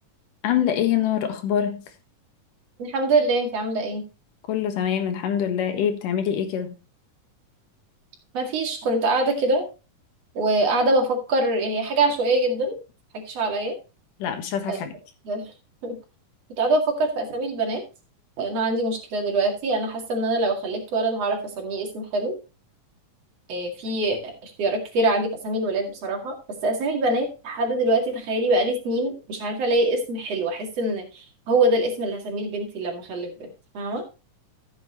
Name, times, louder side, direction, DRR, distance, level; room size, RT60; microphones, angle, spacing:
voice 1, 0.4-1.8 4.5-6.7 14.2-14.9, left 9 dB, 85° left, 3.0 m, -24 dB
voice 2, 2.8-4.0 8.3-9.6 10.3-12.7 13.1-13.8 14.7-14.8 15.2-15.5 15.8-16.0 16.6-17.8 18.4-22.3 23.5-26.3 26.6-33.5 33.7-34.0, right 2 dB, 55° right, 3.1 m, -24 dB
14.0 x 7.7 x 3.0 m
omnidirectional pair, 3.7 m